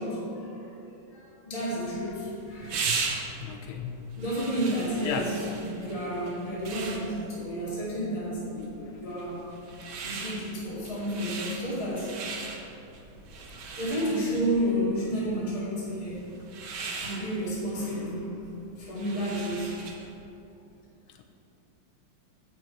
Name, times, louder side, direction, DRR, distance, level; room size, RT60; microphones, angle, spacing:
voice 1, 0.0-2.8 4.2-9.5 10.0-12.1 13.7-16.2 17.0-18.4 18.8-19.8, equal, 15° left, -8 dB, 2.0 m, -31 dB
sound 1, 1.7-20.2, right 4 dB, 75° right, 1.6 m, -39 dB
voice 2, 3.4-4.0 5.0-5.3, left 7 dB, 80° left, 4 dB, 1.5 m, -33 dB
8.3 x 6.4 x 4.6 m, 2.7 s
omnidirectional pair, 2.3 m